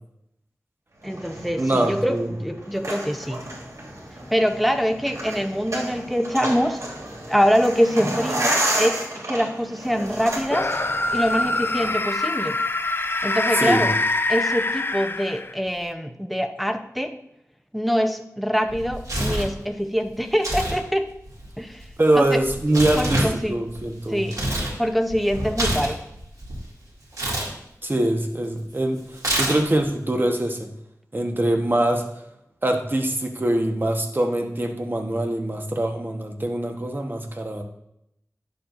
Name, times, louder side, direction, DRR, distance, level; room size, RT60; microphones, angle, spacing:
voice 1, 1.0-3.5 4.3-6.8 7.3-10.7 11.1-12.6 13.2-13.9 14.3-17.2 17.7-21.1 21.6-21.8 22.2-22.4 23.0-23.6 24.1-24.4 24.8-26.0, equal, ahead, 6 dB, 0.7 m, -24 dB
sound 1, 1.0-11.9, right 1 dB, 60° right, 2.8 m, -31 dB
voice 2, 1.6-2.3 13.5-13.9 22.0-24.3 27.8-30.7 31.1-32.0 32.6-37.6, right 1 dB, 35° right, 3 dB, 1.1 m, -23 dB
sound 2, 10.5-15.7, left 2 dB, 40° left, 0.4 m, -24 dB
Tearing, 18.7-19.5 20.3-20.8 21.1-24.7 25.1-26.6 27.1-27.5 29.2-29.8, right 1 dB, 80° right, 2.2 m, -27 dB
9.8 x 7.2 x 2.6 m, 0.79 s
wide cardioid pair, 65°, 6 cm